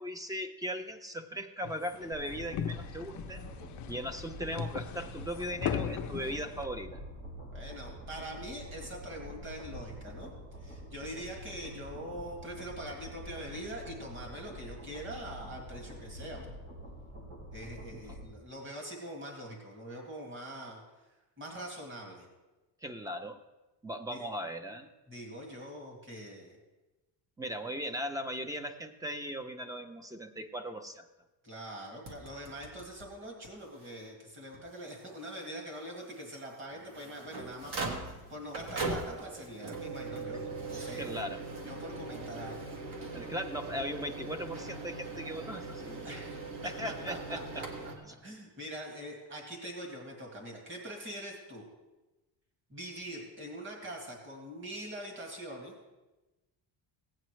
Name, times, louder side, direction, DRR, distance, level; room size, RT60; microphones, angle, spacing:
voice 1, 0.0-3.4 3.9-7.0 22.8-23.4 23.8-24.9 27.4-31.1 37.9-38.0 41.0-41.4 43.1-46.1 46.6-47.6 48.0-48.1, equal, 10° right, 8 dB, 0.5 m, -38 dB
sound 1, 1.6-6.7, left 9 dB, 45° left, 0.5 m, -38 dB
sound 2, 2.1-18.2, equal, 85° right, 4.2 m, -46 dB
voice 2, 7.5-10.3 10.6-16.5 17.5-20.8 21.4-22.3 24.1-24.2 25.1-26.6 31.4-41.3 41.6-42.6 43.0-43.2 46.0-47.7 48.2-51.6 52.7-55.7, right 1 dB, 25° right, 0 dB, 2.1 m, -43 dB
sound 3, 32.1-33.1 33.4-33.5 33.8-33.9 34.5-34.6 36.7-47.9, right 3 dB, 60° right, 1.7 m, -40 dB
16.5 x 8.8 x 3.1 m, 1.1 s
cardioid pair, 150°, 44 cm